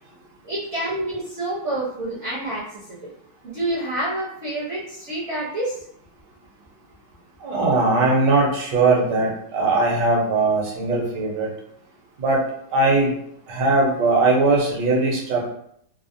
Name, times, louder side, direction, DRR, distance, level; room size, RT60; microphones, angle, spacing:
voice 1, 0.4-3.0 3.4-5.8, right 1 dB, 50° right, -8 dB, 0.9 m, -28 dB
voice 2, 7.4-11.5 12.2-12.4 12.7-13.1 13.5-15.5, right 3 dB, 75° right, -2 dB, 1.4 m, -20 dB
3.3 x 2.0 x 2.5 m, 0.70 s
omnidirectional pair, 1.9 m